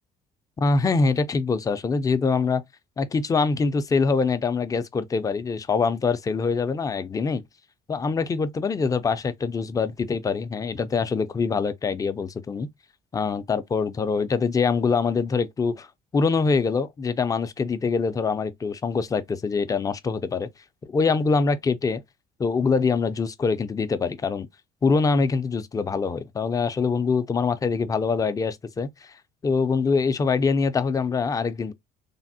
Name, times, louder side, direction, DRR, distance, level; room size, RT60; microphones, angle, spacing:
voice 1, 0.6-2.6 3.0-7.4 7.9-12.7 13.1-20.5 20.8-22.0 22.4-24.5 24.8-29.1 29.4-31.7, left 4 dB, 20° left, 0.3 m, -24 dB
3.3 x 2.0 x 2.6 m
cardioid pair, 110°, 17 cm